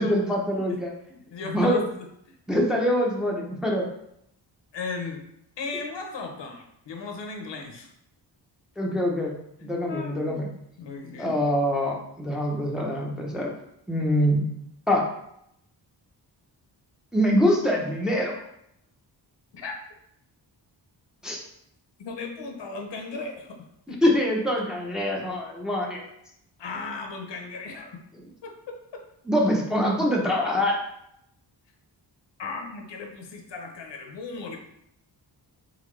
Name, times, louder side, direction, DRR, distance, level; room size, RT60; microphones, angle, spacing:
voice 1, 0.0-0.9 1.4-1.8 2.5-3.9 8.8-9.3 9.6-10.5 11.2-13.5 13.9-14.4 14.9-15.1 17.1-18.3 21.2-21.4 24.0-26.0 29.3-30.8, equal, ahead, -2 dB, 0.6 m, -24 dB
voice 2, 1.1-1.8 2.3-2.4 4.7-5.2 5.6-7.9 9.6-10.4 10.8-11.4 19.5-19.7 22.0-23.6 23.9-24.0 26.6-28.0 28.4-29.0 32.4-34.6, left 4 dB, 75° left, 3 dB, 0.9 m, -36 dB
4.1 x 3.9 x 3.2 m, 0.76 s
wide cardioid pair, 155°, 43 cm